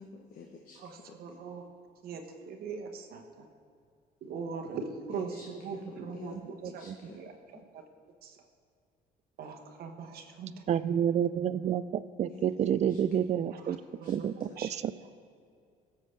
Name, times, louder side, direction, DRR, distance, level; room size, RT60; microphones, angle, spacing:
voice 1, 0.0-1.2 5.1-7.6 12.3-12.4 12.7-13.0 14.0-14.1 14.4-14.6, left 5 dB, 60° left, 2 dB, 0.9 m, -49 dB
voice 2, 1.2-1.6 2.0-3.5 4.2-6.8 8.2-8.4 9.4-10.5 13.5-14.7, right 5 dB, 65° right, 4 dB, 1.1 m, -40 dB
voice 3, 10.7-13.8 14.1-14.9, right 9 dB, 40° right, 15 dB, 0.4 m, -29 dB
17.0 x 7.3 x 3.3 m, 2.3 s
cardioid pair, 110°, 17 cm